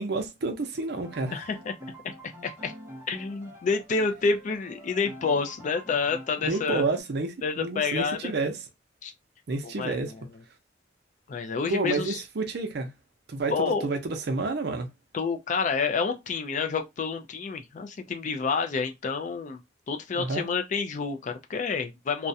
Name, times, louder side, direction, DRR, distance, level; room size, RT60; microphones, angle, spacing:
voice 1, 0.0-1.4 6.4-8.6 9.5-10.1 11.7-12.9 13.3-14.9 20.1-20.5, right 3 dB, 60° right, 0.5 m, -29 dB
sound 1, 1.0-7.0, right 1 dB, 15° right, 0.6 m, -46 dB
voice 2, 1.3-1.7 2.0-2.7 3.1-6.8 7.4-8.3 9.0-9.1 9.6-10.3 11.3-12.2 13.5-13.9 15.1-19.6 19.9-22.3, left 5 dB, 40° left, 0.3 m, -29 dB
2.3 x 2.1 x 2.6 m
head